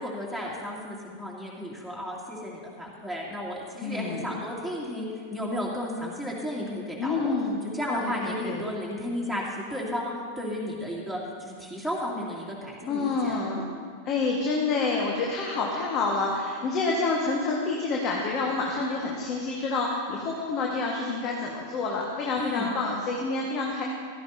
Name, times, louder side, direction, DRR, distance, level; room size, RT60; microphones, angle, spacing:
voice 1, 0.0-7.3 7.7-13.4 22.4-22.7, left 1 dB, 5° left, -5 dB, 2.6 m, -33 dB
voice 2, 3.8-4.3 7.0-7.6 8.0-8.7 12.9-13.6 14.0-23.8, left 3 dB, 35° left, -2 dB, 1.6 m, -28 dB
16.0 x 13.5 x 2.8 m, 2.1 s
figure-of-eight pair, 90°, 0 cm